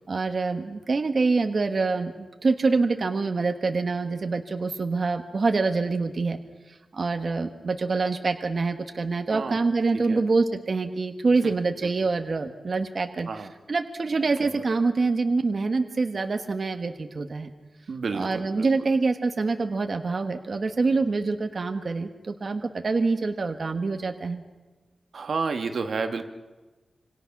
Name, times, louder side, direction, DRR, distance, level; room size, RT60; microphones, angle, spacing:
voice 1, 0.1-6.4 6.9-17.5 18.1-24.4, right 3 dB, 40° right, 6 dB, 1.4 m, -25 dB
voice 2, 17.9-18.7 25.1-26.2, right 4 dB, 60° right, 6 dB, 1.4 m, -30 dB
26.5 x 26.0 x 6.0 m, 1.2 s
wide cardioid pair, 160°, 0 cm